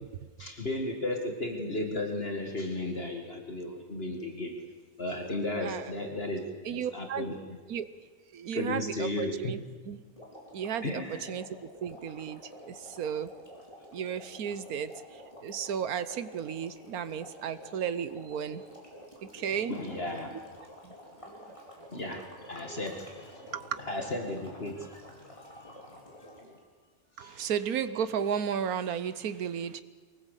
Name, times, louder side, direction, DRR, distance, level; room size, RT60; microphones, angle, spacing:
voice 1, 0.4-4.5 5.0-6.4 6.7-7.6 8.5-9.5 10.8-11.3 19.7-20.3 21.9-23.5 23.8-25.0 25.3-26.5 27.2-27.5, left 2 dB, 45° left, 3 dB, 2.2 m, -35 dB
voice 2, 6.6-7.3 7.7-7.9 8.3-9.6 9.9-10.0 10.5-13.3 13.9-15.0 15.4-18.6 19.3-19.8 20.3-20.4 20.8-20.9 21.3-21.5 21.8-21.9 23.5-23.8 27.2-29.8, right 8 dB, 90° right, 13 dB, 1.4 m, -34 dB
sound 1, 10.1-26.6, equal, 20° left, 4.6 m, -50 dB
23.5 x 19.0 x 8.3 m, 1.4 s
omnidirectional pair, 1.5 m